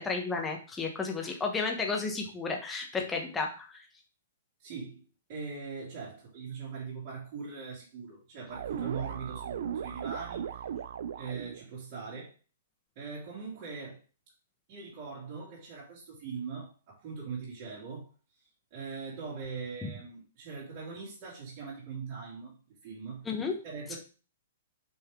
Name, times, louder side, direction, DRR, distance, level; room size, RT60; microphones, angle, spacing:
voice 1, 0.0-3.8 19.8-19.9 23.3-23.5 23.9-24.0, left 4 dB, 5° left, 1 dB, 0.9 m, -32 dB
voice 2, 4.6-5.0 5.3-10.7 11.1-12.3 12.9-14.0 14.7-18.1 18.7-22.5 22.8-23.3 23.6-24.0, right 5 dB, 30° right, -8 dB, 2.9 m, -41 dB
sound 1, 8.5-11.6, right 9 dB, 55° right, 0.5 m, -37 dB
6.0 x 5.6 x 3.6 m, 0.35 s
hypercardioid pair, 175°, 0 cm